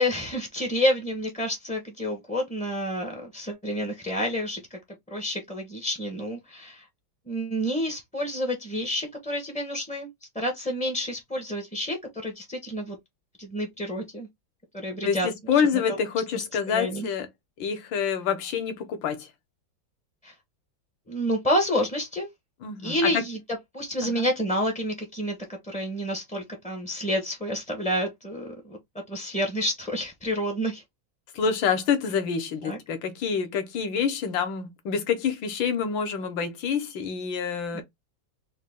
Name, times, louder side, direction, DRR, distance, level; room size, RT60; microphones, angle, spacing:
voice 1, 0.0-4.8 5.1-6.8 7.3-10.1 10.3-13.0 13.4-14.3 14.7-15.3 15.9-16.0 16.3-17.1 20.2-20.3 21.1-22.3 22.8-23.4 23.7-25.4 25.6-28.8 29.1-30.8 32.6-32.8 37.7-37.8, equal, 10° left, 0.3 m, -29 dB
voice 2, 15.0-17.3 17.6-19.3 22.6-23.2 24.0-24.3 31.3-37.8, left 6 dB, 75° left, 1.5 m, -27 dB
3.7 x 2.2 x 3.4 m
omnidirectional pair, 2.2 m